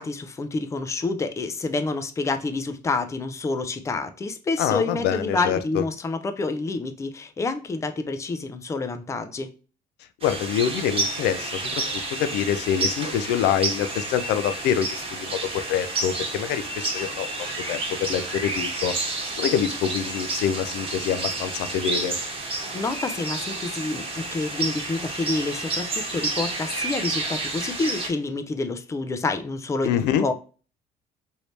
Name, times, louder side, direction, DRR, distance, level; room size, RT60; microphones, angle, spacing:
voice 1, 0.0-9.5 22.7-30.3, left 3 dB, 15° left, 0.4 m, -28 dB
voice 2, 4.6-5.8 10.2-17.3 17.7-18.9 19.4-22.1 29.8-30.3, left 9 dB, 85° left, 0.4 m, -26 dB
sound 1, 10.2-28.1, right 3 dB, 35° right, 1.1 m, -30 dB
3.1 x 2.7 x 3.1 m
cardioid pair, 110°, 17 cm